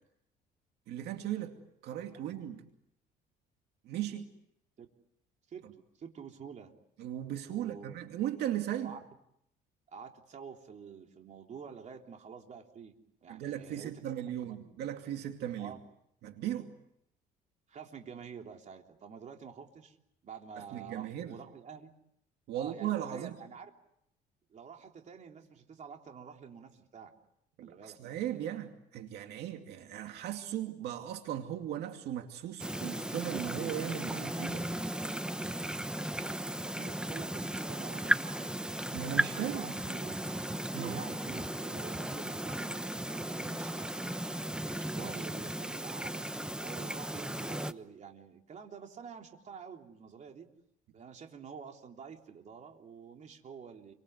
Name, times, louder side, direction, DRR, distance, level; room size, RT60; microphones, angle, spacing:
voice 1, 0.9-1.6 1.8-2.7 3.8-4.3 7.0-9.0 13.3-15.8 16.2-16.8 20.6-21.4 22.5-23.4 27.6-34.7 38.9-39.7 40.7-41.0 45.0-45.1, right 11 dB, 75° right, 5 dB, 2.5 m, -37 dB
voice 2, 6.0-6.7 7.5-8.0 8.8-9.0 9.9-12.9 13.2-14.0 14.4-14.7 15.6-15.8 17.7-20.0 20.2-21.9 22.5-23.7 24.5-27.1 27.6-28.0 36.6-38.5 39.3-40.1 40.7-44.4 45.0-46.2 46.6-50.5 50.9-53.9, right 6 dB, 45° right, 3 dB, 3.5 m, -48 dB
sound 1, 32.6-47.7, right 1 dB, 5° right, 1.0 m, -36 dB
29.5 x 24.5 x 8.2 m, 0.78 s
cardioid pair, 110°, 17 cm